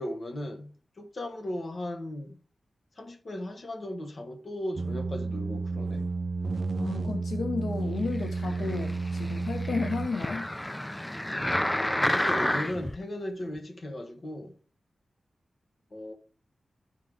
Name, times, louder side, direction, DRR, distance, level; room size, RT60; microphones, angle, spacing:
voice 1, 0.0-2.4 3.0-6.1 11.6-14.5 15.9-16.1, left 1 dB, 50° left, 1.4 m, -37 dB
sound 1, 4.8-10.1, right 3 dB, 55° right, 0.6 m, -32 dB
voice 2, 6.8-10.5, left 4 dB, 90° left, 0.9 m, -33 dB
sound 2, 8.4-13.0 13.6-13.7, left 1 dB, 10° left, 0.4 m, -30 dB
13.5 x 5.2 x 3.5 m
wide cardioid pair, 95°, 0 cm